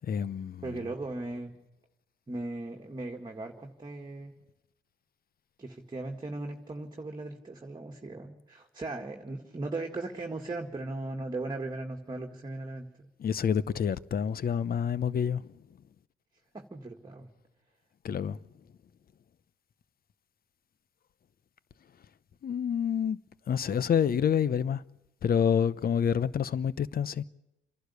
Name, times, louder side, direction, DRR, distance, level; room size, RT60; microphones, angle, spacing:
voice 1, 0.0-0.8 13.2-15.5 18.0-18.4 22.4-23.2 23.5-24.8 25.2-27.2, left 8 dB, 50° left, 0.8 m, -28 dB
voice 2, 0.6-1.5 2.3-4.3 5.6-13.1 16.5-17.3, right 2 dB, 20° right, 2.0 m, -38 dB
28.5 x 11.5 x 8.2 m
cardioid pair, 90°, 20 cm